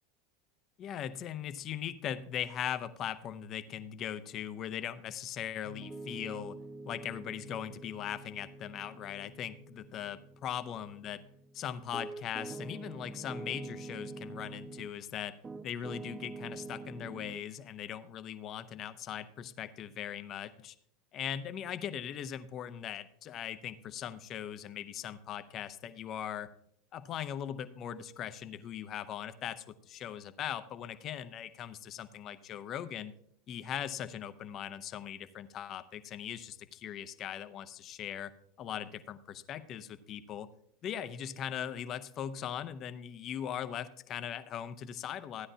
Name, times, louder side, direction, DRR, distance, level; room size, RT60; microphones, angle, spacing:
voice 1, 0.8-6.6 6.9-11.2 11.5-15.4 15.6-20.7 21.1-26.5 26.9-33.1 33.5-38.3 38.6-40.5 40.8-45.5, left 9 dB, 45° left, 11 dB, 0.8 m, -40 dB
Piano, 5.6-15.0 15.4-17.4, right 3 dB, 20° right, 0.6 m, -46 dB
14.5 x 9.9 x 2.8 m, 0.67 s
hypercardioid pair, 90°, 0 cm